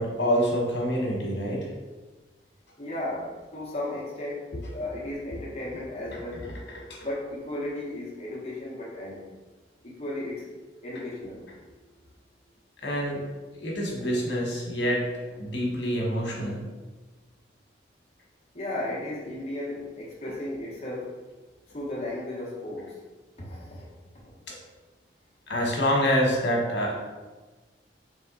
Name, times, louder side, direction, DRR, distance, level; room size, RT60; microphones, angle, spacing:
voice 1, 0.0-1.7 4.5-4.6 6.1-6.5 6.9-7.1 12.8-13.2 13.6-15.1 15.4-16.6 25.5-26.9, equal, 85° left, -1 dB, 1.2 m, -26 dB
voice 2, 2.8-6.5 7.0-9.3 9.8-10.5 10.8-11.5 14.1-14.2 18.5-21.2 21.7-23.0 23.4-23.9 24.2-24.4, left 1 dB, 35° left, -4 dB, 1.1 m, -35 dB
3.6 x 3.2 x 4.0 m, 1.3 s
head